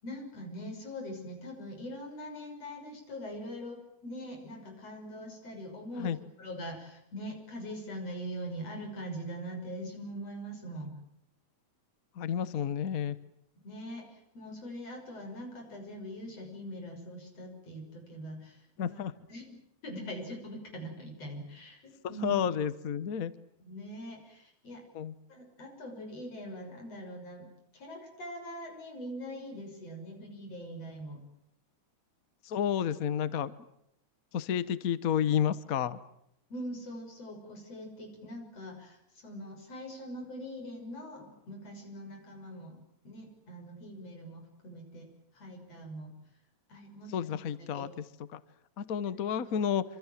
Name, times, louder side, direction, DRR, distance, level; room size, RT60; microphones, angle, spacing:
voice 1, 0.0-11.0 13.6-18.6 18.9-19.0 19.3-19.6 19.8-22.5 23.6-24.8 25.3-27.5 27.7-31.2 36.5-45.1 45.3-46.1 46.7-47.9, equal, 55° left, 3 dB, 7.5 m, -42 dB
voice 2, 12.2-13.2 18.8-19.1 22.2-23.3 24.9-25.1 32.4-33.5 34.3-36.0 47.1-47.9 48.3-48.4 48.8-49.8, left 8 dB, 80° left, 15 dB, 0.7 m, -30 dB
26.5 x 26.5 x 7.5 m, 0.77 s
omnidirectional pair, 3.3 m